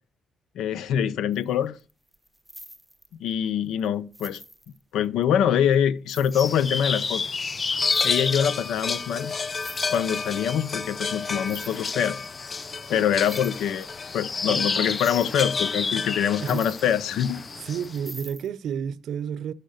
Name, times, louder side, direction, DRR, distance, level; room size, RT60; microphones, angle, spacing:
voice 1, 0.6-1.8 3.2-4.4 4.9-7.2 8.0-9.3 9.9-12.2 12.9-13.9 14.1-17.4, left 9 dB, 80° left, 0.7 m, -24 dB
sound 1, 1.3-1.5 1.8-3.3 3.8-3.9 4.1-5.2 5.7-5.8 6.1-7.1 7.7-8.7 9.0-9.1 9.3-10.3 11.3-12.3 12.5-12.6 13.0-14.3 14.6-17.4 17.8-18.5, equal, ahead, 1.0 m, -45 dB
sound 2, 6.3-18.0, left 4 dB, 35° left, 0.6 m, -30 dB
voice 2, 14.5-15.0 16.4-16.7 17.6-19.5, right 8 dB, 70° right, 0.5 m, -31 dB
10.5 x 6.4 x 6.4 m
cardioid pair, 90°, 0 cm